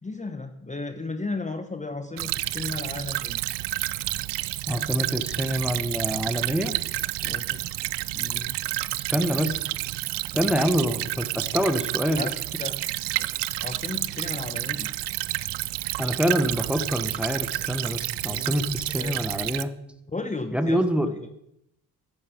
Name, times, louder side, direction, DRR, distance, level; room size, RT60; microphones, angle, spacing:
voice 1, 0.0-3.4 4.7-5.1 7.2-7.6 8.1-8.6 9.1-9.4 10.3-10.7 12.2-12.3 12.6-12.8 13.2-13.3 13.6-14.9 17.6-17.9 18.2-18.5 19.0-19.2 20.1-21.1, left 3 dB, 15° left, 7 dB, 1.1 m, -35 dB
Stream / Trickle dribble, 2.2-19.6, right 18 dB, 70° right, 0.6 m, -30 dB
voice 2, 4.7-6.7 9.0-9.7 10.3-12.3 16.0-19.7 20.5-21.1, equal, 5° right, 8 dB, 1.2 m, -26 dB
10.0 x 9.2 x 5.1 m, 0.80 s
supercardioid pair, 55°, 43 cm